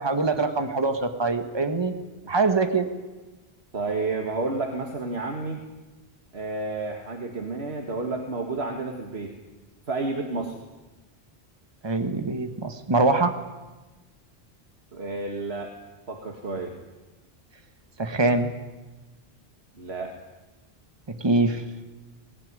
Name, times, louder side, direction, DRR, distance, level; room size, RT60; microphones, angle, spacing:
voice 1, 0.0-1.9 2.3-2.9 11.8-13.4 18.0-18.5 21.1-21.6, right 3 dB, 25° right, 7 dB, 1.5 m, -23 dB
voice 2, 3.7-5.6 6.3-9.3 9.9-10.6 14.9-15.7 16.1-16.7 19.8-20.1, right 3 dB, 75° right, 3 dB, 2.1 m, -30 dB
20.0 x 18.5 x 9.7 m, 1.2 s
omnidirectional pair, 1.1 m